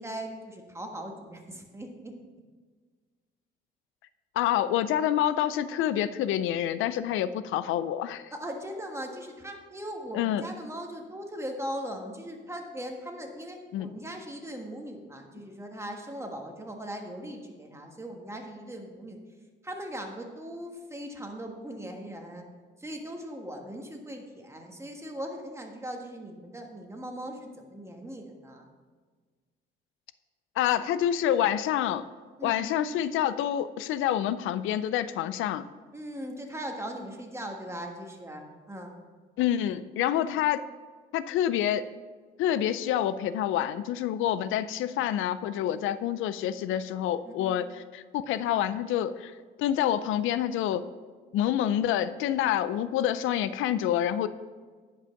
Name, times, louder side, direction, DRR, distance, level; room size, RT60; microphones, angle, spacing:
voice 1, 0.0-2.1 8.3-19.2 19.6-22.4 22.8-28.7 32.4-32.8 35.9-39.0 44.7-45.1 45.7-45.8 47.2-47.6, equal, 15° right, 2 dB, 1.5 m, -39 dB
voice 2, 4.4-8.3 10.1-10.4 13.7-13.9 30.6-32.0 32.4-35.6 39.4-40.6 41.1-41.9 42.4-50.9 51.3-54.3, left 11 dB, 85° left, 15 dB, 0.4 m, -27 dB
10.0 x 5.5 x 5.8 m, 1.5 s
cardioid pair, 90°, 20 cm